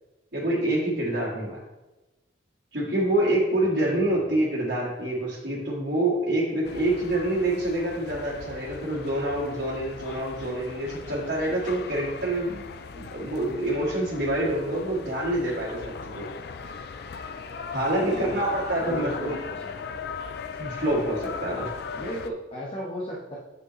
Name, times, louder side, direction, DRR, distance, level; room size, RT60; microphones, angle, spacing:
voice 1, 0.3-1.6 2.7-12.6 12.9-16.2 17.7-19.3 20.6-21.6, right 1 dB, 65° right, -10 dB, 1.8 m, -26 dB
voice 2, 3.9-4.2 18.1-18.4 18.9-20.0 21.5-21.7 21.9-23.4, equal, 30° left, -4 dB, 1.1 m, -36 dB
sound 1, 6.6-22.3, left 5 dB, 55° left, 0.4 m, -38 dB
8.3 x 5.4 x 3.1 m, 1.1 s
head